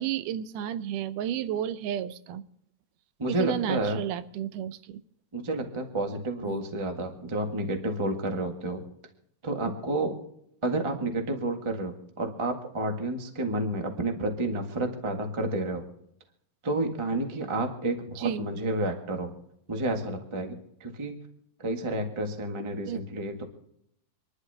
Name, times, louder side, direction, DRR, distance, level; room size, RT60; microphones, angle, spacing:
voice 1, 0.0-2.4 3.4-5.0 6.5-6.6 18.2-18.5 22.9-23.0, right 10 dB, 85° right, 13 dB, 2.2 m, -32 dB
voice 2, 3.2-4.0 5.3-8.8 9.4-10.2 10.6-15.8 16.6-19.3 19.7-21.2 21.6-23.4, right 2 dB, 20° right, 3 dB, 0.7 m, -30 dB
27.0 x 11.5 x 2.8 m, 0.74 s
omnidirectional pair, 3.6 m